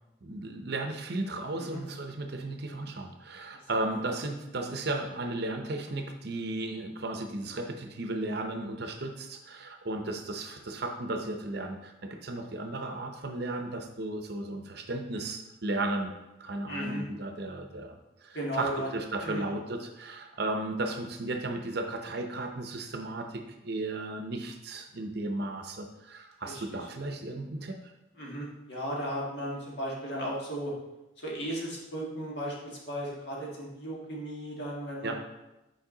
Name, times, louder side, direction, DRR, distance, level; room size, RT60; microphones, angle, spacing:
voice 1, 0.2-16.1 16.4-27.9 35.0-35.1, right 2 dB, 55° right, 5 dB, 0.7 m, -35 dB
voice 2, 16.7-17.1 18.3-18.9 19.2-19.4 26.4-26.9 28.1-30.7 31.2-35.2, equal, 55° left, -4 dB, 1.8 m, -36 dB
7.4 x 4.6 x 3.8 m, 0.97 s
head